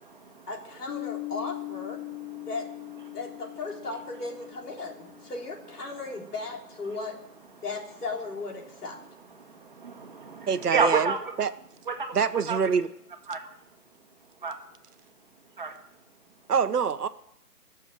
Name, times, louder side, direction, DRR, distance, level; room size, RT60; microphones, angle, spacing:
voice 1, 0.5-2.0 2.5-2.7 3.1-7.2 7.6-9.0, left 3 dB, 70° left, 1 dB, 3.6 m, -36 dB
Piano, 0.9-6.2, left 20 dB, 35° left, 3.8 m, -41 dB
voice 2, 2.1-2.5 3.1-3.2 9.4-11.3 11.9-12.1 12.5-12.6 13.3-13.4 14.4-14.5 15.6-15.7, right 4 dB, 30° right, 4 dB, 1.6 m, -30 dB
voice 3, 10.5-11.1 11.4-11.5 12.1-12.9 16.5-17.1, right 6 dB, 70° right, 12 dB, 1.1 m, -25 dB
21.0 x 7.2 x 7.5 m, 0.79 s
hypercardioid pair, 175°, 47 cm